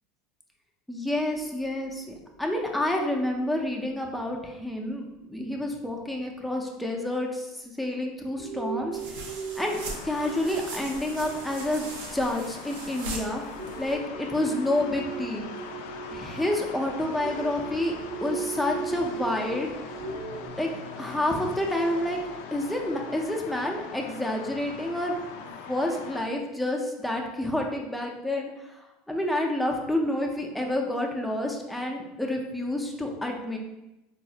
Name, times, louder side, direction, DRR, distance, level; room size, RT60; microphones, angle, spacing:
voice 1, 0.9-9.3 9.6-9.8 10.0-13.4 13.8-15.5 16.1-17.9 18.2-19.7 20.6-20.7 21.0-22.2 22.5-33.6, left 1 dB, 5° left, 0 dB, 0.5 m, -29 dB
sound 1, 1.1-5.1 5.5-5.6 6.7-6.8 7.3-7.4 7.9-8.1 8.4-20.5, right 5 dB, 45° right, 0.7 m, -40 dB
sound 2, 8.9-14.0, right 2 dB, 85° right, 0.5 m, -40 dB
sound 3, 9.7-26.2, left 5 dB, 80° left, 0.3 m, -42 dB
3.9 x 2.0 x 2.7 m, 0.97 s
supercardioid pair, 115°, 0 cm